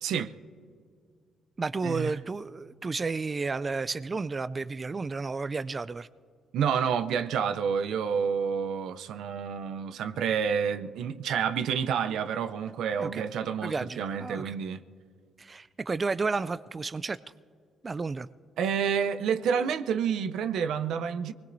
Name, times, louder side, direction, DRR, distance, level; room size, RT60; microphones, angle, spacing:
voice 1, 0.0-0.3 1.8-2.1 6.5-14.8 18.6-21.3, right 7 dB, 80° right, 0.6 m, -29 dB
voice 2, 1.6-6.1 13.0-13.2 13.6-14.5 15.4-17.2 17.8-18.3, right 4 dB, 30° right, 0.3 m, -32 dB
25.0 x 20.0 x 2.7 m
cardioid pair, 90°, 0 cm